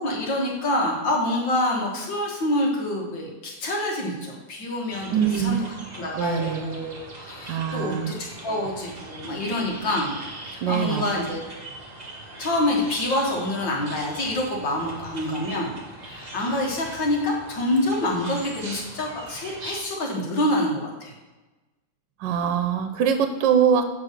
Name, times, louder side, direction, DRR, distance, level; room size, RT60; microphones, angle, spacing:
voice 1, 0.0-5.6 5.9-10.2 10.5-11.4 12.4-15.7 16.0-21.1, left 1 dB, 80° left, -1 dB, 2.4 m, -26 dB
sound 1, 4.9-19.8, right 2 dB, 30° right, 1.0 m, -41 dB
voice 2, 5.1-5.6 6.2-6.7 7.5-8.1 10.6-11.0 22.2-23.8, right 8 dB, 75° right, 7 dB, 1.3 m, -23 dB
7.4 x 4.4 x 6.6 m, 1.1 s
omnidirectional pair, 2.0 m